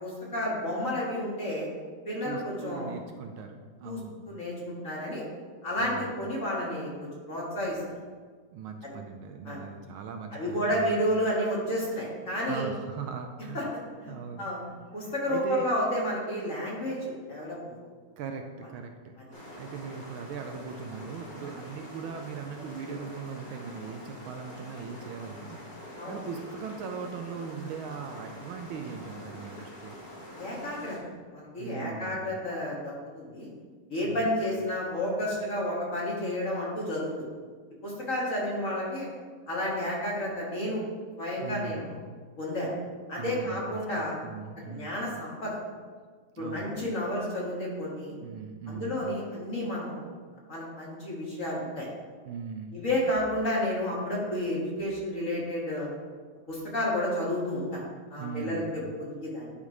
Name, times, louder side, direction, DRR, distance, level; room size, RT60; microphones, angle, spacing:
voice 1, 0.0-1.7 2.1-2.9 3.8-4.0 4.3-5.2 5.6-7.8 8.8-9.0 9.4-9.6 10.3-12.7 13.5-13.6 14.0-14.6 14.9-17.8 26.0-26.2 30.4-31.0 31.3-33.5 33.9-37.3 37.8-39.1 39.5-40.8 41.2-42.0 42.4-42.7 43.1-44.2 44.7-45.6 46.4-48.2 48.7-50.1 50.5-51.9 52.7-55.9 56.5-57.8 58.1-59.5, left 1 dB, 40° left, -5 dB, 1.9 m, -31 dB
voice 2, 2.2-4.2 5.8-6.1 8.5-11.0 12.5-13.7 14.1-14.8 15.0-15.7 18.2-19.1 19.6-25.6 26.1-30.0 31.6-32.3 34.0-34.3 41.4-41.9 43.2-45.0 46.3-46.7 48.2-49.0 52.2-52.8 58.2-58.7, right 6 dB, 75° right, 5 dB, 1.3 m, -39 dB
sound 1, 19.3-31.0, left 1 dB, 20° left, 1.7 m, -45 dB
10.5 x 3.7 x 4.8 m, 1.6 s
omnidirectional pair, 2.4 m